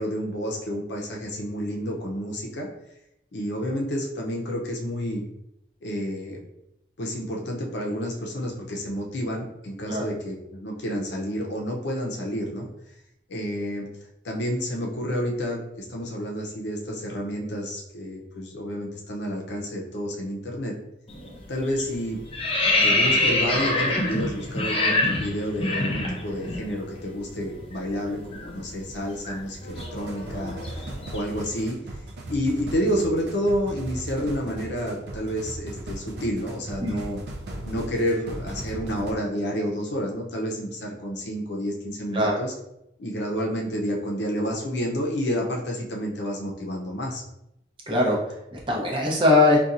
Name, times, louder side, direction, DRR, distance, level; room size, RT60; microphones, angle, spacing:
voice 1, 0.0-2.7 3.3-5.2 5.8-6.4 7.0-12.7 13.3-13.9 14.2-20.8 21.5-22.2 22.8-30.8 31.1-31.8 32.3-37.2 37.6-42.5 43.0-47.2, equal, 75° left, 0 dB, 0.6 m, -29 dB
sound 1, 21.1-21.4 21.7-26.6 26.9-27.1 27.4-31.5, left 2 dB, 30° left, 0.5 m, -25 dB
sound 2, 29.7-39.1, right 1 dB, 65° right, 0.4 m, -38 dB
voice 2, 47.9-49.6, left 2 dB, 30° right, -3 dB, 0.7 m, -21 dB
4.0 x 2.3 x 2.5 m, 0.85 s
head